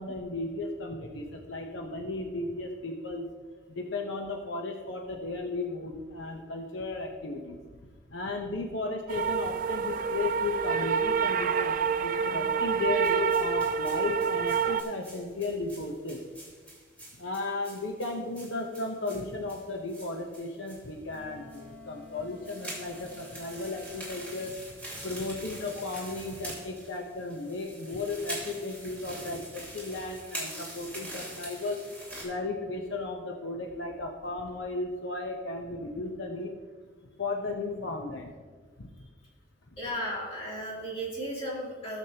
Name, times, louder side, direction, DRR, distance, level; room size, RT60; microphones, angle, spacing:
voice 1, 0.0-3.3 3.7-7.6 8.1-16.2 17.2-24.5 25.0-31.8 32.2-36.5 37.2-38.3 38.8-38.9, left 3 dB, 85° left, 2 dB, 0.9 m, -35 dB
sound 1, 9.1-14.8, right 6 dB, 45° right, 0.3 m, -27 dB
sound 2, 13.0-20.9 21.1-21.2 21.5-21.6 22.2-32.2, right 1 dB, 5° left, 3.2 m, -44 dB
Wind instrument woodwind instrument, 21.0-24.5, left 2 dB, 25° right, 2.0 m, -52 dB
voice 2, 39.8-42.0, equal, 30° left, -6 dB, 3.0 m, -35 dB
15.5 x 7.2 x 2.9 m, 1.5 s
head